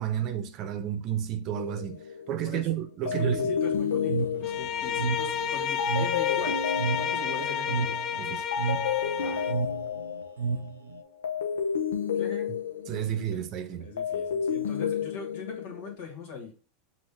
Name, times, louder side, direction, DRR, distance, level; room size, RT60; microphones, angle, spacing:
voice 1, 0.0-2.0 2.3-3.4 8.2-8.4 12.9-13.9, right 10 dB, 50° right, 0.7 m, -31 dB
sound 1, 1.5-2.5 3.1-8.2 8.5-13.5 13.8-16.0, left 7 dB, 90° left, 0.6 m, -31 dB
voice 2, 3.0-8.0 9.2-9.6 12.1-12.5 13.3-13.4 13.8-16.5, left 4 dB, 65° left, 1.8 m, -41 dB
sound 2, 3.1-11.0, right 4 dB, 90° right, 0.4 m, -32 dB
Bowed string instrument, 4.4-9.6, left 8 dB, 45° left, 0.4 m, -31 dB
5.3 x 2.6 x 3.4 m
hypercardioid pair, 100°, 0 cm